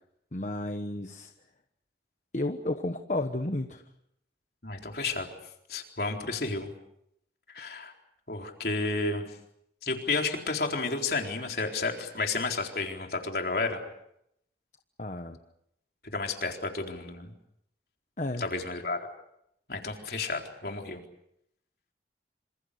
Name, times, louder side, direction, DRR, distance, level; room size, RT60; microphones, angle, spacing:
voice 1, 0.3-1.3 2.3-3.8 15.0-15.4 18.2-18.5, left 2 dB, 45° left, 7 dB, 1.2 m, -32 dB
voice 2, 4.6-5.3 5.7-6.7 7.5-7.9 8.3-9.3 9.8-13.8 16.1-17.3 18.4-19.0 19.7-21.0, left 3 dB, 60° left, 2 dB, 4.1 m, -31 dB
27.0 x 27.0 x 6.7 m, 0.77 s
head